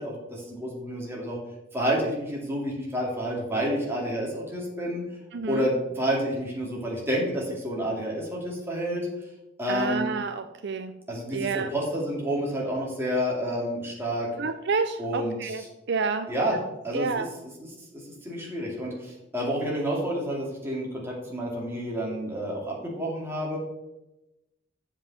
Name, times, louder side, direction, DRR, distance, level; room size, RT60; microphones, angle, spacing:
voice 1, 0.0-1.4 1.7-5.0 5.5-9.1 9.6-10.1 11.1-14.3 15.0-15.7 16.3-16.6 16.8-17.2 17.6-23.6, equal, 10° right, -4 dB, 2.6 m, -29 dB
voice 2, 5.3-5.7 9.7-10.9 11.3-11.7 14.4-16.3 16.9-17.3, right 4 dB, 60° right, 8 dB, 0.5 m, -29 dB
7.4 x 5.3 x 7.4 m, 0.95 s
head